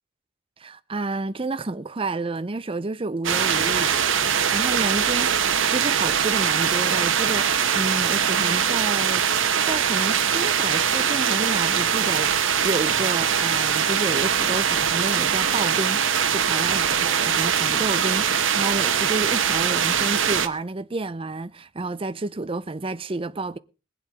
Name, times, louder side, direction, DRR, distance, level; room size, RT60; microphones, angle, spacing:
voice 1, 0.6-5.3 5.7-9.2 9.7-23.6, right 2 dB, 25° right, 0.6 m, -30 dB
sound 1, 3.2-20.5, right 7 dB, 70° right, 1.2 m, -22 dB
21.5 x 7.9 x 5.0 m
head